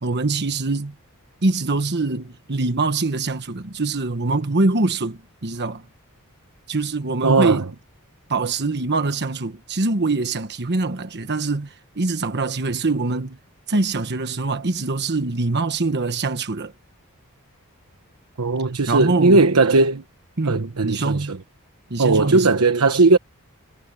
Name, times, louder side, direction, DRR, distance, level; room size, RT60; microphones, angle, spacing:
voice 1, 0.0-0.9 1.4-5.8 6.7-7.7 8.3-13.4 13.7-16.7 18.9-19.4 20.4-21.3 21.9-22.5, right 3 dB, 50° right, 1.3 m, -24 dB
voice 2, 7.2-7.6 18.4-20.0 20.4-21.4 22.0-23.2, right 3 dB, 85° right, 1.1 m, -17 dB
head